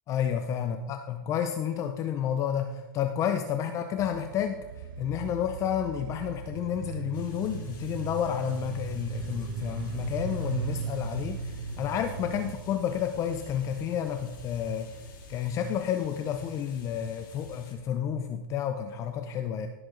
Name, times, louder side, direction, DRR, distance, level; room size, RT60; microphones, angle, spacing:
voice 1, 0.1-4.6 5.0-14.9 15.3-19.7, left 9 dB, 25° left, 7 dB, 0.6 m, -30 dB
sound 1, 4.0-12.6, right 6 dB, 70° right, 1.2 m, -37 dB
sound 2, 7.1-17.7, left 2 dB, 65° left, 4.1 m, -49 dB
17.0 x 7.8 x 3.9 m, 1.2 s
hypercardioid pair, 145°, 12 cm